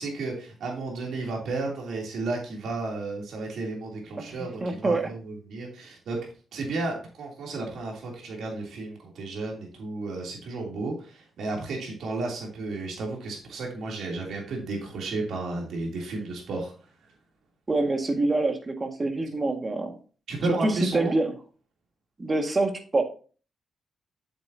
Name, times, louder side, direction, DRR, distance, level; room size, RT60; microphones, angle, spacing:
voice 1, 0.0-6.2 6.5-16.7 17.0-17.1 20.3-21.1, right 3 dB, 75° right, -1 dB, 3.1 m, -33 dB
voice 2, 4.6-5.1 17.7-19.9 20.6-21.3 22.2-23.0, right 2 dB, 35° right, 4 dB, 1.9 m, -25 dB
8.0 x 7.9 x 2.8 m, 0.39 s
supercardioid pair, 60°, 0 cm